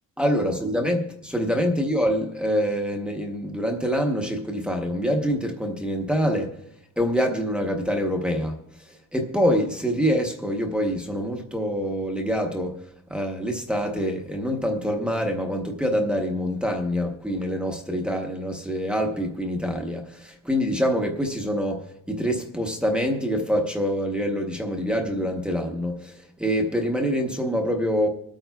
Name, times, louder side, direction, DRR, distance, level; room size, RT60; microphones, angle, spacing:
voice 1, 0.2-6.6 7.0-8.6 8.9-12.8 13.1-28.1, equal, 5° right, 0.9 m, -25 dB
25.5 x 9.0 x 2.3 m
cardioid pair, 175°, 30 cm